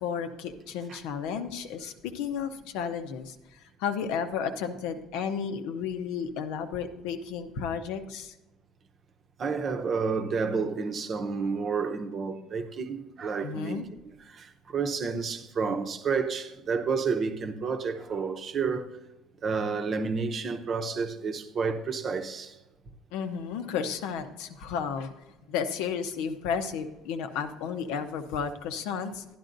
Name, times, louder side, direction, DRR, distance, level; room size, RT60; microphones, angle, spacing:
voice 1, 0.0-8.3 13.4-13.8 23.1-25.1 25.5-29.2, left 7 dB, 80° left, 0.7 m, -33 dB
voice 2, 9.4-13.8 14.3-18.9 19.4-22.6, right 5 dB, 40° right, 0.8 m, -30 dB
12.0 x 10.5 x 2.6 m
cardioid pair, 110°, 0 cm